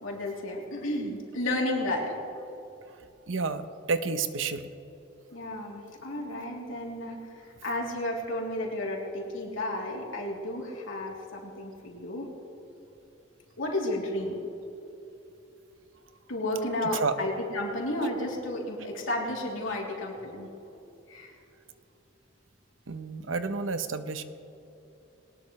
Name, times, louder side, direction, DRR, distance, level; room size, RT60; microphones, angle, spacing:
voice 1, 0.0-2.1 5.3-7.2 7.6-12.3 13.6-14.4 16.3-20.5 21.1-21.3, left 1 dB, 90° left, -2 dB, 3.3 m, -32 dB
voice 2, 3.3-4.7 16.9-17.2 22.9-24.2, right 4 dB, 85° right, 10 dB, 0.9 m, -30 dB
21.5 x 19.0 x 3.3 m, 2.9 s
head